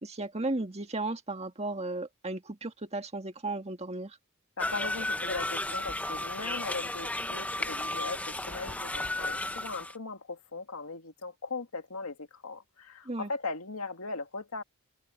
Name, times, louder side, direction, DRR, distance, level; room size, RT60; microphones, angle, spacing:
voice 1, 0.0-4.2 13.1-13.3, right 2 dB, 30° right, 1.8 m, -35 dB
voice 2, 4.6-14.6, left 3 dB, 85° left, 2.1 m, -39 dB
sound 1, 4.6-10.0, left 1 dB, 5° left, 0.7 m, -34 dB
head